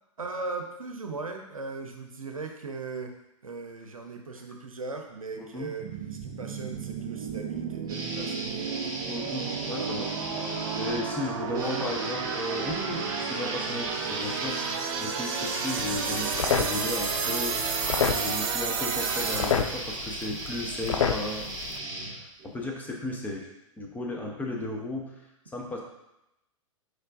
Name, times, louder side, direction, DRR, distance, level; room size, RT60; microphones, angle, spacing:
voice 1, 0.2-3.1 3.4-5.9 6.2-8.6 11.5-11.9, right 4 dB, 85° right, 4 dB, 0.7 m, -38 dB
voice 2, 5.4-5.7 9.1-17.6 18.1-21.5 22.1-23.5 23.8-25.3 25.5-25.8, left 2 dB, 10° left, -1 dB, 0.7 m, -35 dB
sound 1, 5.8-19.8, right 6 dB, 45° right, 0.6 m, -32 dB
sound 2, 7.9-11.0 11.5-22.7, right 1 dB, 20° right, 1.7 m, -37 dB
sound 3, 15.8-21.8, left 7 dB, 70° left, 0.5 m, -31 dB
4.6 x 4.3 x 2.5 m, 0.86 s
figure-of-eight pair, 105°, 17 cm